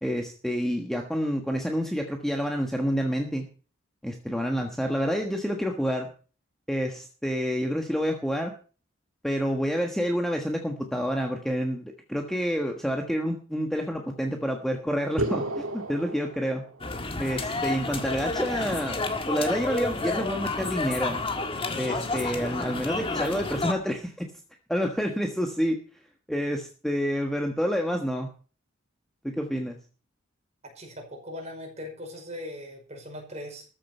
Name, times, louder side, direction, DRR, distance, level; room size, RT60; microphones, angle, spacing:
voice 1, 0.0-3.4 4.0-6.1 6.7-8.5 9.2-16.6 17.2-21.2 21.8-24.3 24.7-25.8 26.3-28.3 29.2-29.8, equal, ahead, 3 dB, 1.3 m, -28 dB
sound 1, 15.2-17.1, right 1 dB, 80° right, 2.1 m, -32 dB
sound 2, 16.8-23.7, left 3 dB, 25° left, 1.6 m, -30 dB
voice 2, 30.8-33.7, left 1 dB, 30° right, 2 dB, 5.3 m, -39 dB
14.0 x 7.7 x 6.7 m, 0.38 s
head